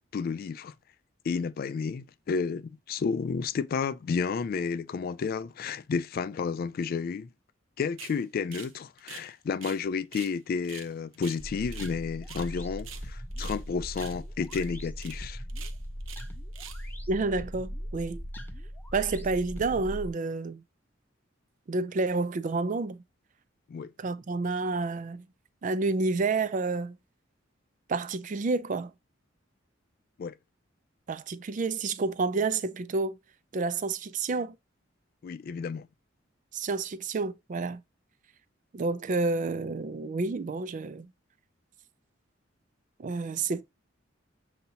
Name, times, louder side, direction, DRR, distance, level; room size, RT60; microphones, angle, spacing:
voice 1, 0.1-0.7 1.2-7.3 7.8-15.4 23.7-23.9 30.2-30.4 35.2-35.9, left 5 dB, 50° left, 0.3 m, -31 dB
sound 1, 8.0-8.2 8.5-8.7 9.0-9.8 10.1-10.3 10.6-12.0 12.2-12.5 12.8-13.6 13.9-14.2 14.4-14.7 15.0-15.2 15.5-16.3 16.5-16.9, right 9 dB, 85° right, 0.7 m, -45 dB
sound 2, 11.4-20.1, equal, 10° left, 0.6 m, -39 dB
voice 2, 17.1-18.2 18.9-20.6 21.7-23.0 24.0-25.2 25.6-27.0 27.9-28.9 31.1-33.2 33.5-34.6 36.5-37.8 38.7-41.1 43.0-43.6, right 3 dB, 40° right, 0.4 m, -29 dB
6.7 x 2.8 x 2.8 m
head